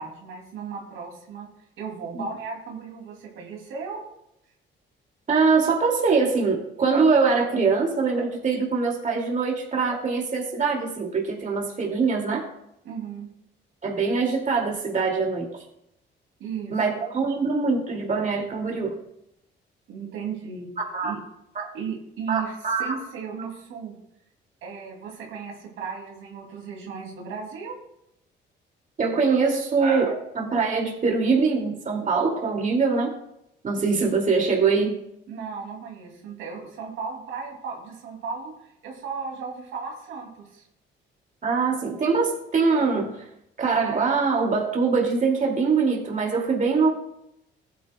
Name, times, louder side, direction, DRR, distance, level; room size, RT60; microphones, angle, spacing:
voice 1, 0.0-1.5 1.8-4.0 12.8-13.3 16.4-16.9 19.9-20.7 21.0-21.2 21.7-24.0 24.6-27.8 35.3-40.7, right 5 dB, 90° right, -1 dB, 2.5 m, -35 dB
voice 2, 5.3-12.5 13.8-15.6 16.7-19.0 20.9-21.1 21.6-21.7 22.3-22.9 29.0-33.2 33.6-35.0 41.4-43.2 43.6-46.9, right 4 dB, 40° right, -1 dB, 2.2 m, -23 dB
15.5 x 9.2 x 2.2 m, 0.80 s
cardioid pair, 90°, 20 cm